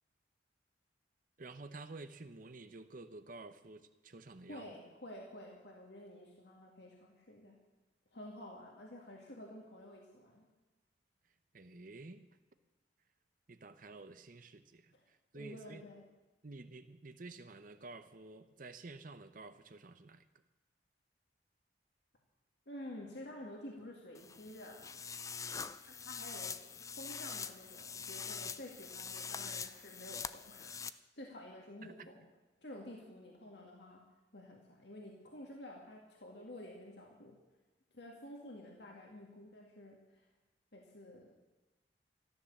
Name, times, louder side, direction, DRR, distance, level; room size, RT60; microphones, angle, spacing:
voice 1, 1.4-4.7 11.5-12.3 13.5-15.8 16.4-20.2 31.8-32.1, right 3 dB, 50° right, 10 dB, 0.8 m, -51 dB
voice 2, 4.5-7.6 8.1-10.5 14.9-15.0 15.3-16.0 22.7-25.0 25.8-30.9 31.2-32.3 32.6-34.0 34.3-37.4 37.9-40.3 40.7-41.3, left 1 dB, 65° left, 0 dB, 2.3 m, -50 dB
sound 1, 24.1-30.9, left 6 dB, 20° left, 0.4 m, -44 dB
13.5 x 13.0 x 7.2 m, 1.1 s
head